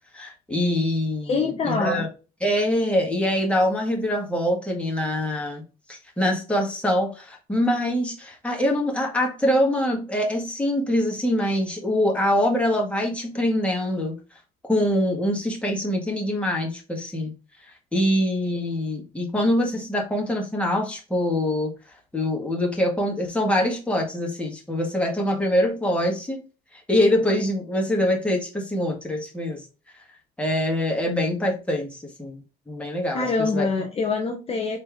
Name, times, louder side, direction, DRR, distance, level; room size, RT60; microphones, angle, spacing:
voice 1, 0.1-2.1 2.4-5.6 5.9-14.2 14.7-17.3 17.7-21.7 22.1-26.4 26.9-29.6 30.4-33.7, left 1 dB, 5° left, 1.8 m, -24 dB
voice 2, 1.3-2.0 33.1-34.8, left 4 dB, 35° left, 1.0 m, -25 dB
4.3 x 3.3 x 3.5 m
cardioid pair, 110°, 17 cm